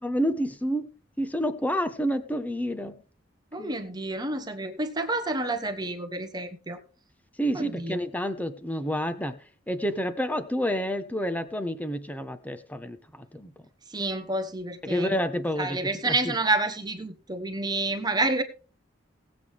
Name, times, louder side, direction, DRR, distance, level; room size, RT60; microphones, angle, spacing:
voice 1, 0.0-0.9 1.2-3.0 3.6-3.7 7.4-9.4 9.7-13.5 14.8-15.8 16.0-16.3, equal, 10° left, 10 dB, 1.1 m, -29 dB
voice 2, 3.5-6.8 7.5-8.0 13.9-15.2 15.6-18.4, right 2 dB, 20° right, 6 dB, 1.2 m, -29 dB
18.5 x 8.3 x 3.6 m, 0.37 s
head